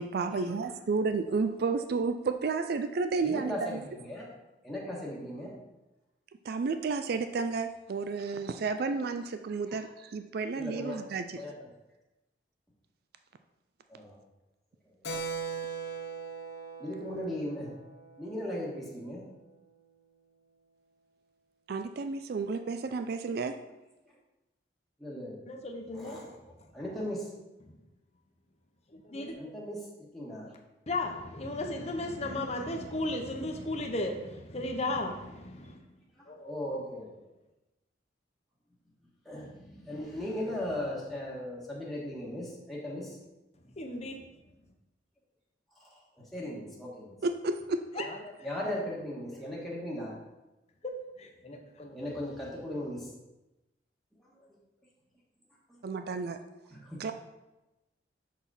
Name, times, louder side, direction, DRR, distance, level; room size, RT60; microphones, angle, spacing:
voice 1, 0.0-3.8 6.5-11.4 21.7-23.5 47.2-48.0 55.8-56.4 57.0-57.1, right 4 dB, 55° right, 9 dB, 0.4 m, -31 dB
voice 2, 3.2-4.3 4.6-5.5 9.7-9.8 10.6-11.0 11.4-11.5 13.9-14.2 14.8-14.9 16.8-17.7 18.2-19.2 25.0-25.4 25.9-27.3 29.4-29.8 30.1-30.5 36.2-37.2 39.2-43.2 45.7-47.2 48.4-50.2 51.9-53.1 54.2-54.5 56.7-57.0, left 1 dB, ahead, -6 dB, 1.4 m, -38 dB
Keyboard (musical), 15.0-19.1, right 4 dB, 60° left, 1.0 m, -40 dB
voice 3, 25.5-26.4 27.6-27.8 28.9-29.4 30.9-35.8 36.3-36.6 43.8-44.2 47.9-48.2 50.8-50.9 51.2-52.0, left 2 dB, 35° left, 3 dB, 0.8 m, -35 dB
6.1 x 5.9 x 4.1 m, 1.0 s
head